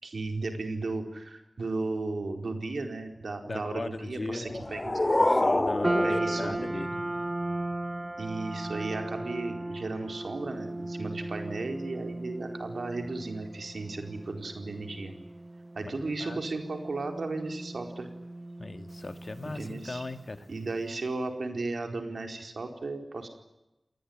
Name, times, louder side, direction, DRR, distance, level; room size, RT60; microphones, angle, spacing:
voice 1, 0.0-4.8 6.0-6.7 8.2-15.1 15.7-18.1 19.4-20.0 20.5-23.3, right 3 dB, 90° right, 5 dB, 4.5 m, -35 dB
voice 2, 3.5-4.7 5.2-7.0 15.8-16.4 18.6-20.5, left 2 dB, 55° left, 9 dB, 2.2 m, -38 dB
sound 1, 4.3-7.3, left 1 dB, 35° left, 2.6 m, -27 dB
sound 2, 5.8-20.3, right 1 dB, 30° right, 1.1 m, -36 dB
29.0 x 20.0 x 9.6 m, 0.96 s
wide cardioid pair, 65°, 0 cm